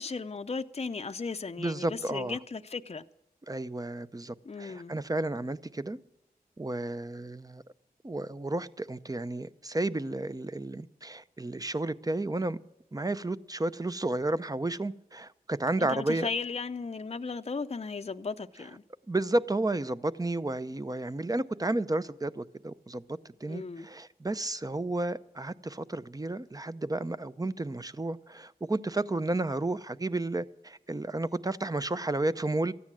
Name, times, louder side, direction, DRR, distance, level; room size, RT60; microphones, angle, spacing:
voice 1, 0.0-3.0 4.4-4.9 15.8-18.8 23.5-23.9, left 4 dB, 40° left, 0.6 m, -36 dB
voice 2, 1.6-2.4 3.5-6.0 6.6-7.6 8.0-12.6 12.9-16.3 19.1-32.7, right 2 dB, 20° right, 0.7 m, -32 dB
14.0 x 9.6 x 7.4 m
cardioid pair, 40°, 16 cm